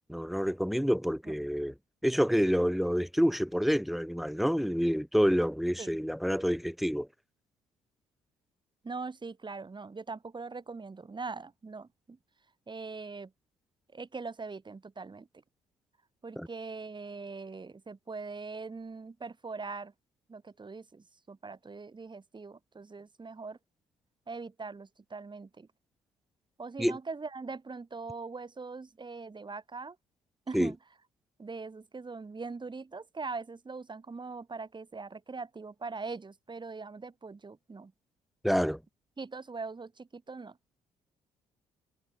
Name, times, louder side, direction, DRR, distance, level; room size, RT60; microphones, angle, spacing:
voice 1, 0.0-1.7 2.0-7.1 16.4-16.5 26.8-27.0 30.5-30.7 38.4-38.8, equal, ahead, 1.1 m, -28 dB
voice 2, 8.8-12.2 12.7-13.3 13.9-15.3 16.2-19.9 20.3-23.6 24.3-25.7 26.6-30.0 30.5-30.8 31.4-37.9 39.2-40.6, right 4 dB, 30° right, 5.4 m, -41 dB
hypercardioid pair, 50°, 15 cm